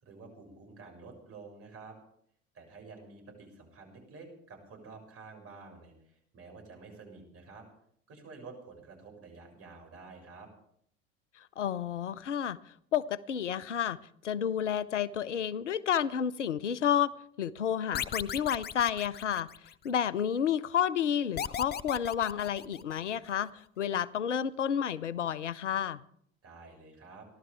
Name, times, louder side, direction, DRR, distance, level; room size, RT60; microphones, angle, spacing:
voice 1, 0.0-2.0 2.5-7.7 8.1-10.5 26.4-27.3, right 4 dB, 40° right, 2 dB, 7.1 m, -50 dB
voice 2, 11.6-12.6 12.9-14.0 14.2-19.5 19.8-23.5 23.8-26.0, left 9 dB, 90° left, 20 dB, 0.7 m, -30 dB
sound 1, 17.9-19.9 21.4-23.2, left 9 dB, 30° left, 0.7 m, -37 dB
30.0 x 12.0 x 3.5 m, 0.67 s
hypercardioid pair, 70°, 35 cm